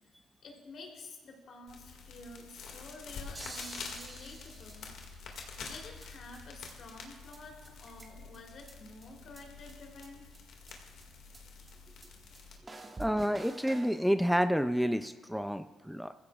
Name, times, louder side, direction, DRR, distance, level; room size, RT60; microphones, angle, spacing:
voice 1, 0.4-4.9 5.3-10.2, left 2 dB, 60° left, 0 dB, 3.4 m, -50 dB
sound 1, 1.7-12.6, left 5 dB, 80° left, 2.1 m, -47 dB
sound 2, 3.3-5.4 5.7-5.8 6.0-6.1 6.3-6.4 6.7-6.8 7.0-7.1 7.3-7.4 7.6-8.4 8.7-8.8 9.0-9.1 9.4-9.5 9.7-9.8 10.0-10.1 10.3-10.4 10.7-10.8 11.0-11.1 11.3-11.4 11.7-11.8 12.0-12.1 12.3-12.4 12.7-14.0, right 2 dB, 25° right, 1.7 m, -47 dB
voice 2, 13.0-16.1, equal, ahead, 10 dB, 0.4 m, -29 dB
20.5 x 15.5 x 2.4 m, 1.3 s
cardioid pair, 90°, 0 cm